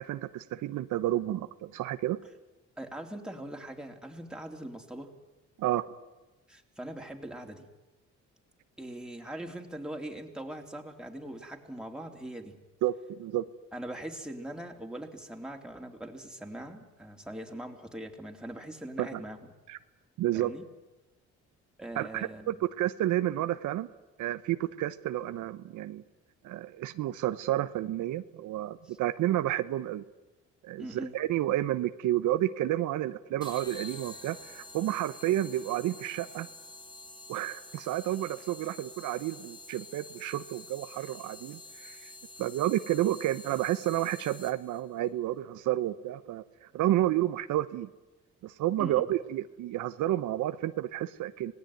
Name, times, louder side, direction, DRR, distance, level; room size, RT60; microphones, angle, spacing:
voice 1, 0.0-2.2 5.6-5.8 12.8-13.4 19.0-19.1 19.7-19.8 20.2-20.5 21.9-23.9 24.2-26.0 26.4-30.0 30.6-36.5 37.3-42.1 42.4-47.9 48.4-51.5, right 14 dB, 85° right, 11 dB, 1.0 m, -30 dB
voice 2, 2.8-5.1 6.5-7.7 8.8-12.6 13.7-19.5 20.3-20.6 21.8-22.6 28.8-29.0 30.8-31.1 48.8-49.1, right 1 dB, 5° right, 2 dB, 3.6 m, -41 dB
sound 1, 33.4-44.8, left 2 dB, 15° left, 3.8 m, -48 dB
26.0 x 19.0 x 9.4 m, 1.1 s
cardioid pair, 90°, 30 cm